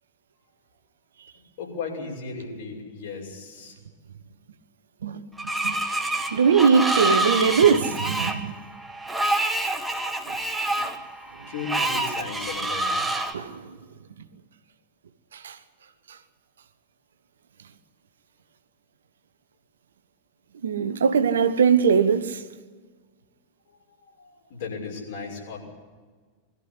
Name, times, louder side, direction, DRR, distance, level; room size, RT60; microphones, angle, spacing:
voice 1, 1.6-3.7 11.5-13.0 24.5-25.6, left 4 dB, 55° left, 6.1 m, -35 dB
voice 2, 5.0-5.8 6.3-8.5 10.3-10.4 10.8-10.9 11.4-11.5 13.3-13.8 14.2-14.3 15.3-15.6 16.1-16.2 20.6-22.4, right 6 dB, 65° right, 1.2 m, -21 dB
Screech, 5.4-13.3, right 1 dB, 5° right, 1.5 m, -27 dB
21.5 x 13.5 x 9.9 m
figure-of-eight pair, 90°, 0 cm